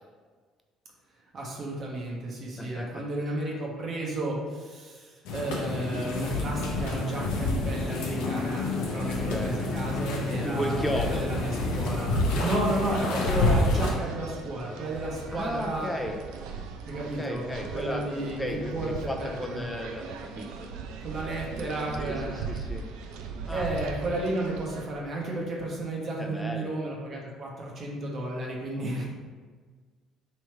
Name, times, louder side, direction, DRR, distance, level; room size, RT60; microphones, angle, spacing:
voice 1, 1.3-12.1 12.4-15.9 16.8-19.6 21.0-22.4 23.5-29.0, right 1 dB, 50° right, -2 dB, 0.9 m, -33 dB
voice 2, 2.6-3.6 8.9-9.7 10.4-11.3 13.1-13.3 13.7-13.9 15.3-16.2 17.2-20.7 22.0-22.9 23.5-23.7 26.2-26.7 28.8-29.0, equal, 10° left, 3 dB, 0.6 m, -35 dB
sound 1, 5.3-13.9, left 2 dB, 75° left, 0.7 m, -28 dB
sound 2, 13.8-24.9, right 5 dB, 70° right, 0.3 m, -39 dB
3.2 x 3.0 x 4.5 m, 1.5 s
hypercardioid pair, 55°, 0 cm